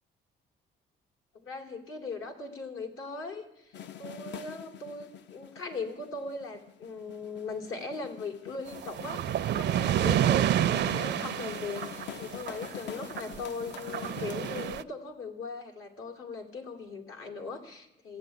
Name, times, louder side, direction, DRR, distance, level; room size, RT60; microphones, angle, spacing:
voice 1, 1.3-18.2, left 3 dB, 80° left, 6 dB, 2.5 m, -39 dB
sound 1, 3.7-14.7, left 9 dB, 65° left, 0.6 m, -45 dB
sound 2, 8.7-13.4 13.7-14.8, right 11 dB, 60° right, 0.5 m, -29 dB
14.5 x 8.0 x 9.4 m, 0.88 s
cardioid pair, 90°, 20 cm